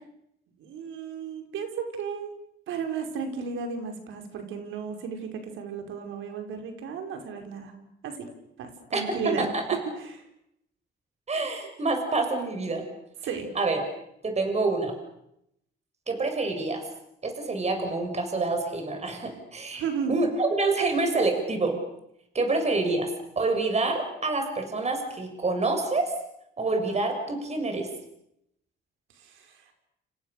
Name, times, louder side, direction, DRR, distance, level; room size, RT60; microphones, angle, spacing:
voice 1, 0.6-2.3 2.7-7.7 8.0-8.3 8.6-9.5 10.0-10.1 13.2-13.5 19.7-20.2 29.2-29.5, right 6 dB, 85° right, 5 dB, 5.6 m, -34 dB
voice 2, 8.9-9.6 11.3-12.8 13.6-13.8 14.2-14.9 16.1-16.8 17.2-21.8 22.3-23.1 23.4-26.1 26.6-27.9, right 3 dB, 35° right, 5 dB, 7.1 m, -27 dB
30.0 x 28.5 x 6.9 m, 0.79 s
cardioid pair, 90°, 20 cm